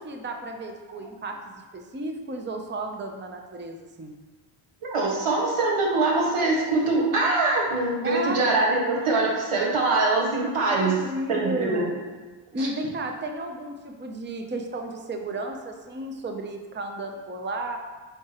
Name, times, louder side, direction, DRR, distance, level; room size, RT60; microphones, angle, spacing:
voice 1, 0.0-4.1 8.0-8.4 10.7-12.0 12.5-17.8, right 2 dB, 25° right, 4 dB, 0.6 m, -33 dB
voice 2, 4.8-11.0 11.3-11.9 12.6-12.7, right 3 dB, 90° right, -3 dB, 1.6 m, -23 dB
7.9 x 4.7 x 3.0 m, 1.3 s
wide cardioid pair, 90°, 49 cm